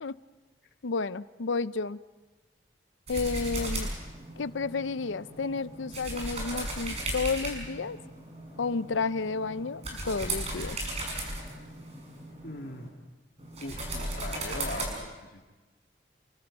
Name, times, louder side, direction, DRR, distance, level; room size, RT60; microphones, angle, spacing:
voice 1, 0.8-2.0 3.1-3.9 4.4-8.0 8.6-10.8, left 4 dB, 85° left, 16 dB, 0.6 m, -31 dB
sound 1, 3.1-12.9 13.4-14.9, right 1 dB, 35° right, 5.9 m, -36 dB
voice 2, 12.4-12.9 13.6-15.5, left 2 dB, 60° left, 2 dB, 2.5 m, -40 dB
28.0 x 23.5 x 5.4 m, 1.2 s
head